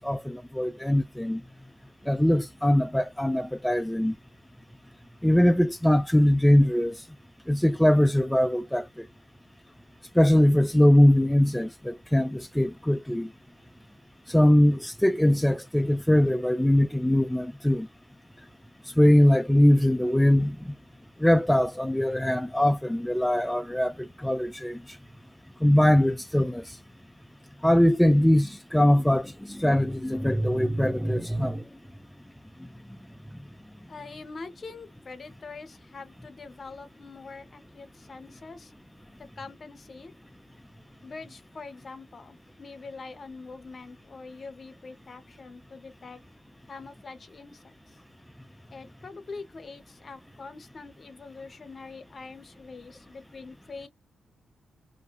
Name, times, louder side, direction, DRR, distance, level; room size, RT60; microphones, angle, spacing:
voice 1, 0.0-1.4 2.1-4.2 5.2-7.0 7.5-8.9 10.1-13.3 14.3-17.9 19.0-20.7 21.2-25.0 25.6-26.8 27.6-31.7, left 1 dB, 5° left, 0.3 m, -22 dB
voice 2, 33.9-38.7 39.2-40.1 41.0-46.2 46.7-47.8 48.7-53.9, left 4 dB, 50° left, 0.7 m, -44 dB
2.6 x 2.2 x 2.2 m
supercardioid pair, 45°, 0 cm